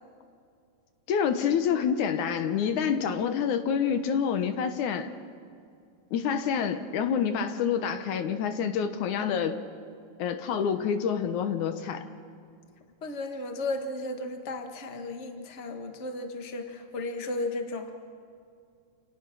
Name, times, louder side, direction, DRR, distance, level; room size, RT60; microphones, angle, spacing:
voice 1, 1.1-5.1 6.1-9.6 10.2-12.0, left 7 dB, 65° left, 9 dB, 2.2 m, -27 dB
voice 2, 13.0-17.9, left 2 dB, 45° left, 5 dB, 0.8 m, -34 dB
29.0 x 27.5 x 6.2 m, 2.4 s
omnidirectional pair, 4.2 m